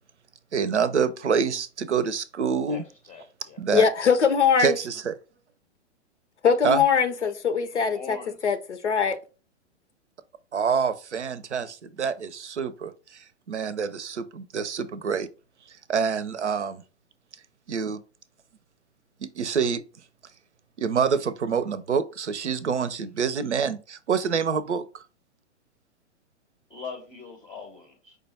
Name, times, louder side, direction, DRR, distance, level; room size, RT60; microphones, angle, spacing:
voice 1, 0.5-2.8 3.6-3.8 4.6-5.1 6.6-6.8 10.5-15.3 15.9-16.8 17.7-18.0 19.2-19.8 20.8-25.0, right 6 dB, 80° right, 0.6 m, -26 dB
voice 2, 2.7-3.6 7.9-8.4 26.7-28.2, left 5 dB, 15° left, 0.6 m, -41 dB
voice 3, 3.7-4.8 6.4-8.2 8.4-9.2, left 6 dB, 75° left, 0.7 m, -22 dB
4.9 x 2.3 x 4.1 m
figure-of-eight pair, 110°, 35 cm